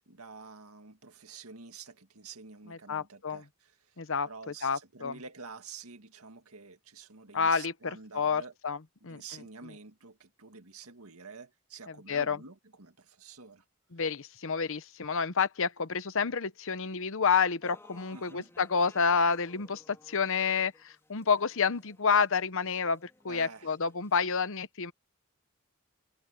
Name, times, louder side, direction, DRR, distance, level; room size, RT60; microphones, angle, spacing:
voice 1, 0.0-4.0 4.2-8.5 9.1-13.6 18.1-18.5 23.3-23.7, right 4 dB, 90° right, 2.0 m, -49 dB
voice 2, 2.7-3.4 4.0-5.1 7.3-8.8 9.0-9.2 12.1-12.4 13.9-24.9, left 5 dB, 65° left, 1.0 m, -29 dB
sound 1, 17.6-24.4, left 2 dB, 10° left, 3.5 m, -59 dB
head